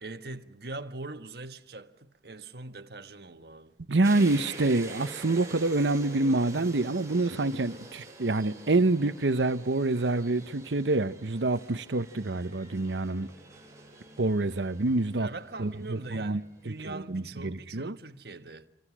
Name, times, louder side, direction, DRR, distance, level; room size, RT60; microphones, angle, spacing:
voice 1, 0.0-3.8 15.2-18.7, right 2 dB, 60° right, 1.4 m, -42 dB
voice 2, 3.9-13.3 14.2-15.3 15.6-16.4 16.8-18.0, right 2 dB, 90° right, 0.9 m, -27 dB
sound 1, 4.0-16.7, right 2 dB, 15° right, 7.8 m, -47 dB
28.0 x 25.5 x 6.2 m
head